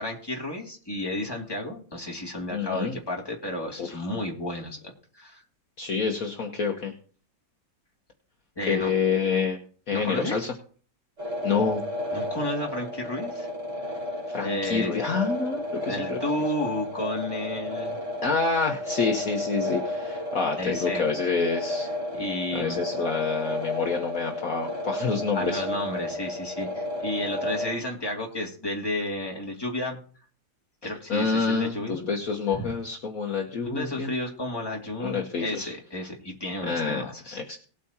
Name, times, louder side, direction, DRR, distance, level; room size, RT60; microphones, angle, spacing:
voice 1, 0.0-5.4 8.6-8.9 9.9-10.5 12.1-13.5 14.4-14.9 15.9-18.0 20.6-21.1 22.1-22.8 25.3-30.0 30.8-32.1 32.5-32.7 33.6-37.6, left 1 dB, 15° left, -1 dB, 2.3 m, -32 dB
voice 2, 2.5-3.0 3.8-4.0 5.8-6.9 8.7-9.6 9.9-10.5 11.4-11.8 14.3-16.2 18.2-21.9 22.5-25.6 30.8-34.1 35.0-35.7 36.6-37.0 37.3-37.6, left 5 dB, 55° left, 1 dB, 1.5 m, -27 dB
sound 1, 11.2-27.7, left 1 dB, 40° right, 5.0 m, -32 dB
19.0 x 8.4 x 2.9 m, 0.43 s
omnidirectional pair, 2.0 m